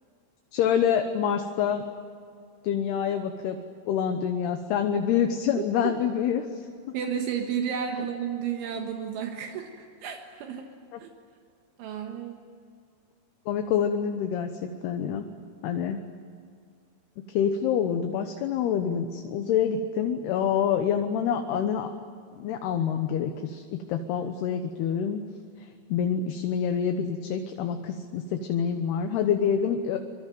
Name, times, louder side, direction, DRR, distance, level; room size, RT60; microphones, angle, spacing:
voice 1, 0.5-1.8 2.6-3.6 3.9-6.4 10.9-11.0 13.5-14.5 14.8-15.3 15.6-16.0 17.3-21.9 22.3-25.2 25.9-30.0, left 8 dB, 70° left, 6 dB, 2.8 m, -26 dB
voice 2, 5.6-5.9 6.9-10.7 11.0-11.1 11.8-12.4, right 8 dB, 75° right, 3 dB, 3.8 m, -32 dB
25.0 x 24.5 x 9.2 m, 2.2 s
omnidirectional pair, 5.6 m